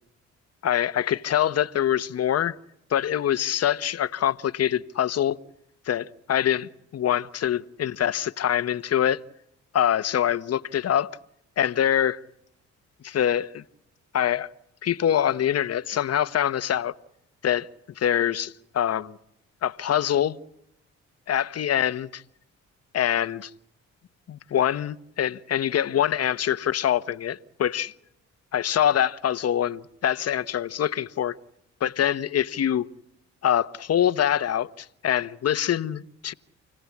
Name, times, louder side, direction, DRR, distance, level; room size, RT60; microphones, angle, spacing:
voice 1, 0.6-2.5 2.9-5.4 5.9-9.2 9.7-11.2 11.6-12.2 13.0-13.6 14.1-14.5 14.8-16.9 17.4-17.7 18.0-19.2 19.6-20.4 21.3-22.2 22.9-23.5 24.3-27.9 28.5-31.4 31.8-32.9 33.4-36.3, left 10 dB, 55° left, 1.1 m, -24 dB
29.5 x 17.5 x 8.5 m
cardioid pair, 90°, 30 cm